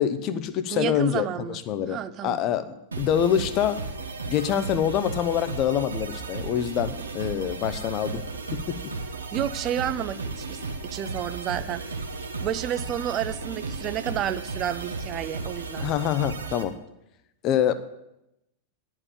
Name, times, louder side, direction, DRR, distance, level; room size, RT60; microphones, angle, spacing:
voice 1, 0.0-3.8 4.3-8.2 8.5-8.8 15.8-16.7 17.4-17.7, left 9 dB, 35° left, 13 dB, 0.6 m, -26 dB
voice 2, 0.7-1.6 1.9-2.4 9.3-12.1 12.4-15.9, right 10 dB, 35° right, 15 dB, 0.4 m, -31 dB
sound 1, 2.9-16.6, right 3 dB, 75° right, 0.9 m, -34 dB
11.0 x 4.6 x 7.4 m, 0.86 s
figure-of-eight pair, 90°, 0 cm